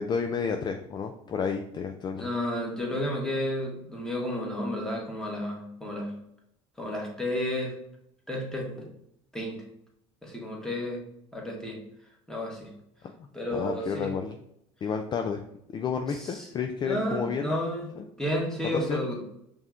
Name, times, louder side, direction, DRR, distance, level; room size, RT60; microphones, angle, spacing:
voice 1, 0.0-2.3 13.5-14.4 14.8-15.4 15.7-17.5 18.0-18.1 18.6-19.0, left 6 dB, 30° left, 5 dB, 0.4 m, -31 dB
voice 2, 2.2-6.1 6.8-7.7 8.3-8.9 9.3-9.6 10.2-11.0 11.3-11.8 12.3-12.7 13.3-14.1 16.1-16.5 16.8-17.9 18.2-19.2, left 1 dB, 5° left, -2 dB, 1.4 m, -31 dB
5.3 x 3.1 x 2.5 m, 0.77 s
supercardioid pair, 90°, 14 cm